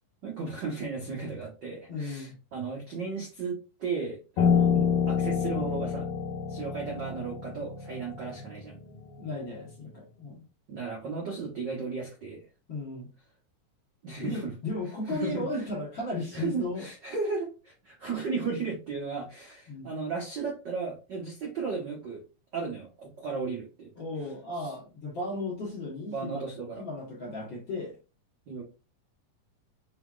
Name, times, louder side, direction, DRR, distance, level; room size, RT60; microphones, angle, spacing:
voice 1, 0.2-4.7 5.1-6.1 6.5-8.8 10.7-12.5 14.0-14.5 15.1-15.7 16.3-22.2 22.5-23.9 24.6-24.7 26.1-26.8 28.5-28.6, right 4 dB, 75° right, -2 dB, 0.9 m, -35 dB
voice 2, 1.9-2.3 4.7-4.9 9.2-10.4 12.7-13.1 14.2-16.9 19.7-19.9 24.0-26.4 26.8-28.0, left 2 dB, 50° left, -4 dB, 1.6 m, -35 dB
Piano, 4.4-9.6, left 7 dB, 70° left, 2.3 m, -28 dB
5.8 x 3.0 x 2.4 m, 0.30 s
omnidirectional pair, 3.7 m